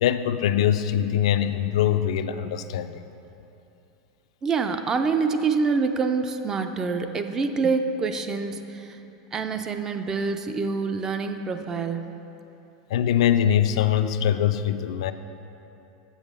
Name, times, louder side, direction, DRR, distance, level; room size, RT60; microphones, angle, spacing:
voice 1, 0.0-2.9 12.9-15.1, left 10 dB, 75° left, 10 dB, 0.4 m, -22 dB
voice 2, 4.4-9.0 9.3-12.1, right 4 dB, 15° right, 7 dB, 0.3 m, -26 dB
7.1 x 6.2 x 5.3 m, 2.9 s
supercardioid pair, 165°, 3 cm